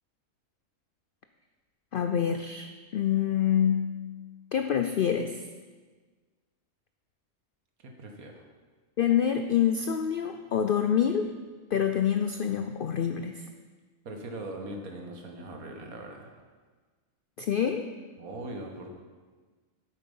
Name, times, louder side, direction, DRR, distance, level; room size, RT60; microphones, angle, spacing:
voice 1, 1.9-4.0 4.5-5.4 9.0-11.3 11.7-13.5 17.4-17.9, left 8 dB, 75° left, 7 dB, 0.5 m, -26 dB
voice 2, 7.8-8.5 14.1-16.4 18.2-19.0, right 1 dB, 85° right, 2 dB, 1.7 m, -40 dB
8.6 x 8.3 x 5.4 m, 1.4 s
omnidirectional pair, 1.5 m